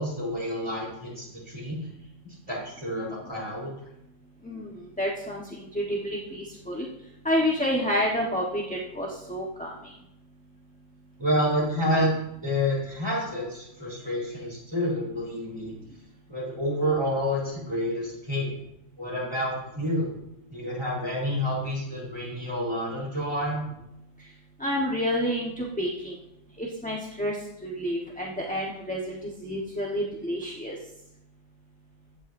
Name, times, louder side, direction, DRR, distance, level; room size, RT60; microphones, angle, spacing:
voice 1, 0.0-1.8 2.2-3.7 11.2-12.1 12.4-15.7 16.3-18.5 19.0-20.1 20.5-23.6, equal, 20° right, -5 dB, 4.3 m, -29 dB
voice 2, 4.4-6.9 7.2-9.7 24.6-26.2 26.6-27.4 27.6-30.8, equal, 5° left, -3 dB, 1.2 m, -29 dB
15.5 x 8.6 x 2.7 m, 0.84 s
omnidirectional pair, 1.4 m